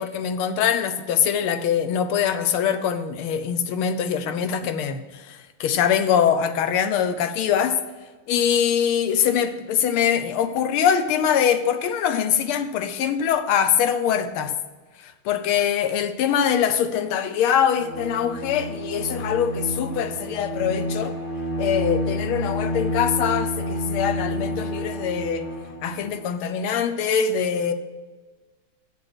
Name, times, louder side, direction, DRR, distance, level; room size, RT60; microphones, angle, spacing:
voice 1, 0.0-7.8 8.3-14.5 15.0-21.1 21.6-25.5 25.8-27.7, left 8 dB, 80° left, 1.6 m, -23 dB
Bowed string instrument, 17.7-26.2, equal, 25° left, 1.4 m, -29 dB
7.7 x 7.4 x 6.1 m
omnidirectional pair, 2.4 m